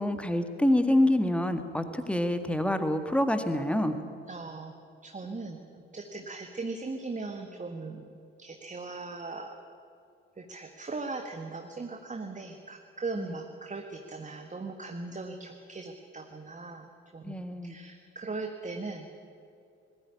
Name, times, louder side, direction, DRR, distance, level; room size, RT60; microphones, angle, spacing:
voice 1, 0.0-4.0 13.2-13.4 17.2-17.8, left 1 dB, 5° left, 8 dB, 1.8 m, -26 dB
voice 2, 4.3-4.7 5.0-8.0 8.4-9.6 10.4-16.8 17.1-17.3 17.6-19.1, right 3 dB, 20° right, 4 dB, 1.6 m, -39 dB
20.5 x 14.0 x 9.8 m, 2.5 s
figure-of-eight pair, 40°, 34 cm